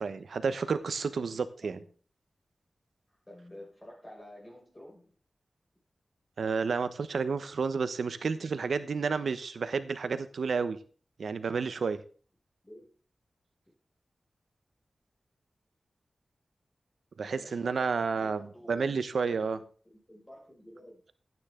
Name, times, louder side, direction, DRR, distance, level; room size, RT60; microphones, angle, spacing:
voice 1, 0.0-1.8 6.4-10.8 11.2-12.0 17.2-19.6, right 5 dB, 90° right, 12 dB, 0.9 m, -31 dB
voice 2, 3.3-5.1 12.6-12.9 17.3-18.9 19.2-21.0, left 1 dB, 20° left, -2 dB, 6.0 m, -51 dB
12.0 x 9.6 x 3.8 m, 0.40 s
wide cardioid pair, 95°, 0 cm